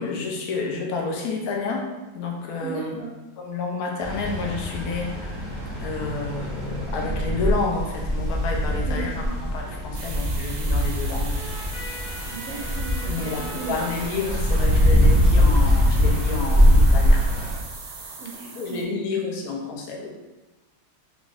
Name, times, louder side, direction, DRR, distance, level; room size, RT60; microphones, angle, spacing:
voice 1, 0.0-1.9 2.1-3.0 3.4-5.4 5.8-11.4 13.1-17.2 18.5-20.1, left 4 dB, 80° left, 0 dB, 0.8 m, -30 dB
voice 2, 2.6-3.1 8.9-9.3 9.9-10.0 12.3-13.1 13.4-13.8 18.2-19.3, right 5 dB, 85° right, -4 dB, 1.5 m, -36 dB
sound 1, 4.0-17.5, equal, 20° right, 0.7 m, -22 dB
sound 2, 9.9-18.8, right 4 dB, 70° right, 1.0 m, -39 dB
4.9 x 2.5 x 2.4 m, 1.1 s
omnidirectional pair, 2.3 m